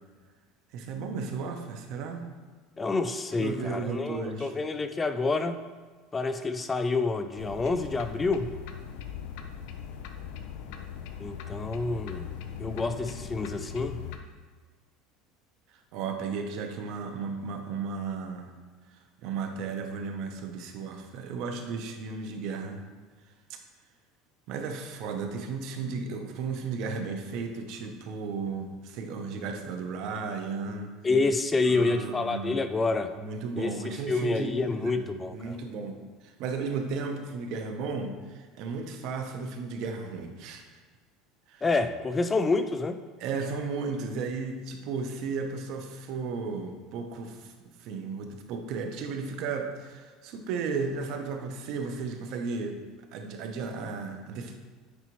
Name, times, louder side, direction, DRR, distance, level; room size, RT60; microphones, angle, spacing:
voice 1, 0.7-2.2 3.4-4.5 15.9-18.5 18.9-22.8 23.5-23.6 24.5-30.9 31.6-32.5 33.2-35.0 35.3-40.6 41.5-41.6 43.2-47.5 47.8-52.8 53.1-54.6, right 4 dB, 60° right, 5 dB, 0.8 m, -34 dB
voice 2, 2.8-5.6 6.1-8.5 11.2-12.3 12.6-14.0 31.0-33.1 33.6-33.7 34.1-35.6 41.6-43.0, left 3 dB, 15° left, 9 dB, 0.3 m, -28 dB
sound 1, 7.4-14.2, left 8 dB, 75° left, 0.6 m, -40 dB
9.7 x 4.0 x 3.1 m, 1.4 s
supercardioid pair, 140°, 0 cm